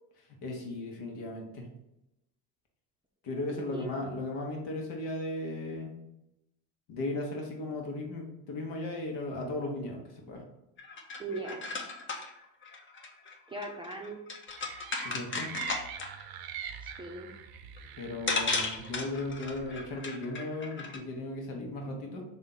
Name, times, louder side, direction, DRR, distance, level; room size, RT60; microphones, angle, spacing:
voice 1, 0.3-1.7 3.2-6.0 6.9-10.4 15.0-15.5 18.0-22.2, left 2 dB, 65° left, 1 dB, 1.2 m, -36 dB
voice 2, 3.5-4.2 11.2-11.6 13.5-14.2 16.8-17.3, right 2 dB, 10° right, 0 dB, 0.6 m, -40 dB
sound 1, 10.8-16.2 17.8-17.9 18.3-21.0, left 3 dB, 25° left, 0.7 m, -36 dB
sound 2, 14.6-20.0, right 8 dB, 55° right, 0.6 m, -44 dB
3.4 x 2.7 x 3.8 m, 0.89 s
supercardioid pair, 80°, 46 cm